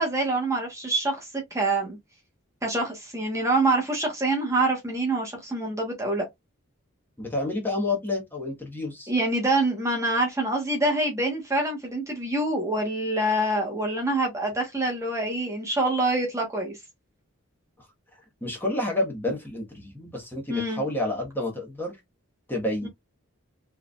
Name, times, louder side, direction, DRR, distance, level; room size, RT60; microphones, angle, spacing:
voice 1, 0.0-2.0 2.6-6.3 9.1-16.8 20.5-20.8 22.8-22.9, right 2 dB, 15° right, 1.1 m, -26 dB
voice 2, 7.2-9.1 18.1-22.0 22.5-22.9, left 2 dB, 10° left, 1.2 m, -29 dB
4.5 x 3.3 x 2.3 m
head